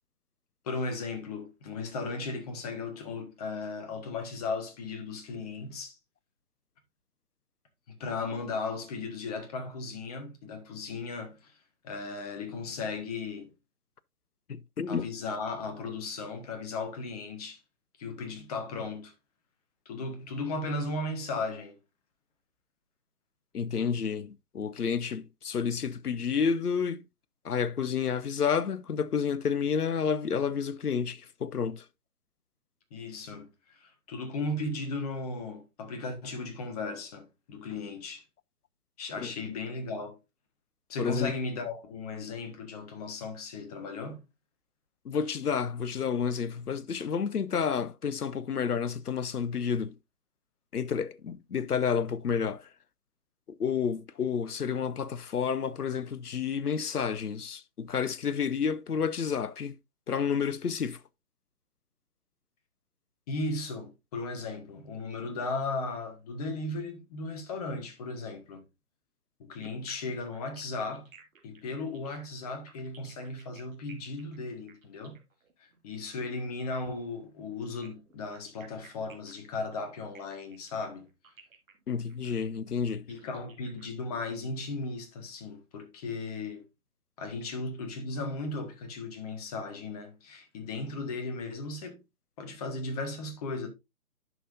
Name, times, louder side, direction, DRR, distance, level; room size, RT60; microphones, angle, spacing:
voice 1, 0.6-6.0 7.9-11.6 11.8-13.5 14.9-17.6 18.0-19.1 19.8-21.8 32.9-38.2 39.0-40.2 40.9-44.2 63.3-68.6 69.4-71.1 71.4-75.2 75.6-81.1 83.1-86.6 87.2-92.0 92.4-93.7, left 3 dB, 25° left, 1.4 m, -36 dB
voice 2, 14.5-15.1 23.5-27.0 27.4-31.9 39.2-39.3 41.0-41.3 45.0-49.9 50.7-52.7 53.6-59.8 60.1-61.0 81.9-83.1, left 6 dB, 85° left, 0.7 m, -30 dB
sound 1, 69.6-76.4 77.6-84.3, right 6 dB, 60° right, 2.6 m, -56 dB
11.0 x 5.8 x 2.6 m
figure-of-eight pair, 140°, 45 cm